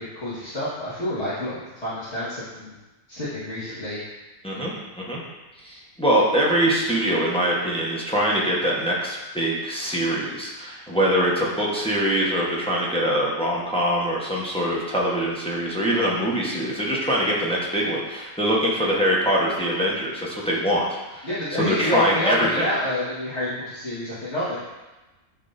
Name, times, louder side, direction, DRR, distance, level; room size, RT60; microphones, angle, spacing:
voice 1, 0.0-2.7 3.1-4.0 21.2-24.6, left 1 dB, 55° left, -13 dB, 2.0 m, -28 dB
voice 2, 4.4-5.2 5.6-21.3 21.7-22.7, equal, 5° left, -5 dB, 0.9 m, -23 dB
10.0 x 4.0 x 2.6 m, 1.1 s
omnidirectional pair, 1.4 m